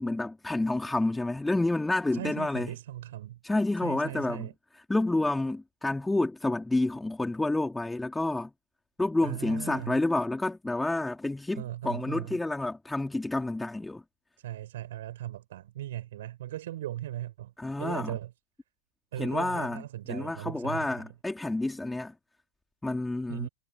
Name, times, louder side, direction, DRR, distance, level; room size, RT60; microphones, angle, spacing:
voice 1, 0.0-2.7 3.4-4.5 4.9-8.5 9.0-14.0 17.6-18.1 19.2-19.8 20.1-22.1 22.8-23.5, left 2 dB, 5° left, 4.3 m, -29 dB
voice 2, 2.1-3.4 3.8-4.5 9.2-10.0 11.6-12.4 14.4-17.5 17.8-18.3 19.1-21.0 23.3-23.5, right 13 dB, 55° right, 7.7 m, -38 dB
figure-of-eight pair, 90°, 0 cm